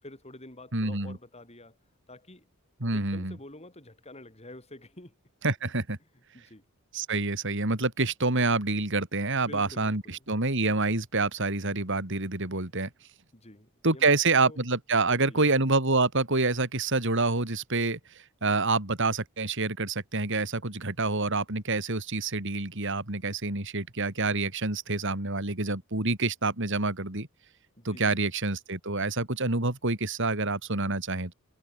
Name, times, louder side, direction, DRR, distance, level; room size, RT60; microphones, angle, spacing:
voice 1, 0.0-1.8 2.1-2.5 2.9-5.1 6.1-6.6 9.3-10.3 13.3-14.2 14.4-14.6 15.1-15.5 27.8-28.3, left 1 dB, 30° left, 5.6 m, -48 dB
voice 2, 0.7-1.2 2.8-3.4 5.4-6.0 6.9-12.9 13.8-18.0 18.4-27.3 27.9-31.3, right 3 dB, 60° right, 3.6 m, -27 dB
head